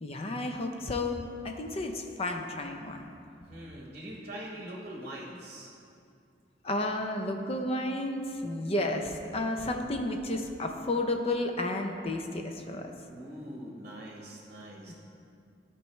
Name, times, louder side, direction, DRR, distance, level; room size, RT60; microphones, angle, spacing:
voice 1, 0.0-3.1 6.6-12.9 14.9-15.0, left 2 dB, 35° left, 4 dB, 0.6 m, -32 dB
voice 2, 3.5-5.7 13.1-14.9, right 1 dB, 40° right, -2 dB, 1.0 m, -43 dB
12.5 x 4.6 x 3.1 m, 2.5 s
head